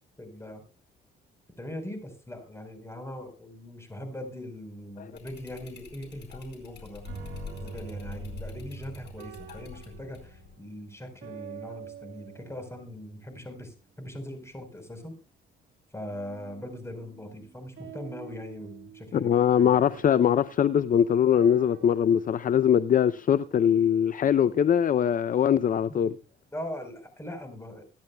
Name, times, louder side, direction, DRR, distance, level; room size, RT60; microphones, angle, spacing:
voice 1, 0.2-0.6 1.6-7.0 7.6-15.2 15.9-19.7 23.7-23.9 25.9-26.0 26.5-27.8, left 1 dB, 15° left, 4.5 m, -41 dB
sound 1, 5.1-10.5, left 7 dB, 60° left, 4.7 m, -45 dB
sound 2, 7.0-13.6 16.1-22.5 23.4-24.0, right 7 dB, 75° right, 1.7 m, -46 dB
voice 2, 19.1-26.1, left 9 dB, 45° left, 0.5 m, -22 dB
23.0 x 10.5 x 2.3 m
cardioid pair, 90°, 20 cm